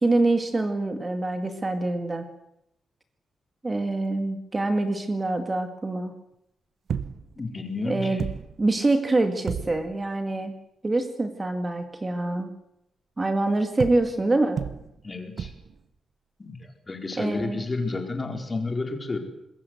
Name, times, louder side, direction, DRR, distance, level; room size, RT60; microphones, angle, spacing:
voice 1, 0.0-2.3 3.6-6.1 7.9-8.2 8.6-10.5 10.8-12.5 13.2-14.6 17.2-17.7, right 2 dB, 20° right, 6 dB, 2.1 m, -25 dB
sound 1, 6.9-7.4 7.8-7.9 8.2-8.8 9.5-10.0 13.8-14.3 14.6-15.0 15.4-15.8 18.2-18.3, right 7 dB, 55° right, 1.1 m, -33 dB
voice 2, 7.4-8.2 15.0-15.5 16.4-16.6 16.9-19.2, left 3 dB, 25° left, 4 dB, 4.4 m, -31 dB
26.0 x 21.5 x 8.1 m, 0.80 s
wide cardioid pair, 145°, 0 cm